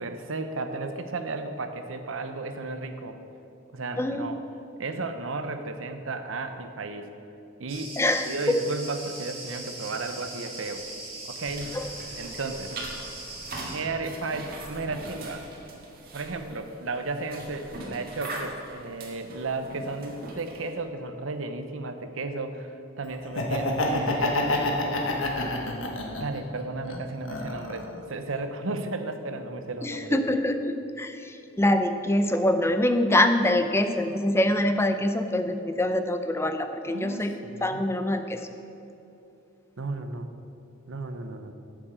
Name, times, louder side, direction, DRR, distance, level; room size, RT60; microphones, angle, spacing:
voice 1, 0.0-3.2 3.7-4.4 4.8-7.1 7.6-7.9 8.3-10.8 11.3-11.8 12.2-12.7 13.7-15.5 16.1-24.8 26.2-30.2 36.8-37.8 39.8-40.3 40.9-41.5, right 3 dB, 70° right, 8 dB, 0.8 m, -34 dB
Cricket, 7.7-13.7, right 2 dB, 30° right, 2.7 m, -40 dB
voice 2, 8.0-8.6 11.7-11.8 29.8-37.3 37.6-38.5, left 1 dB, 10° left, 7 dB, 0.5 m, -24 dB
sound 1, 11.5-20.8, right 2 dB, 45° right, 1.7 m, -41 dB
Laughter, 23.2-26.4 26.8-28.0, left 2 dB, 70° left, 1.2 m, -27 dB
8.8 x 7.2 x 6.7 m, 2.8 s
head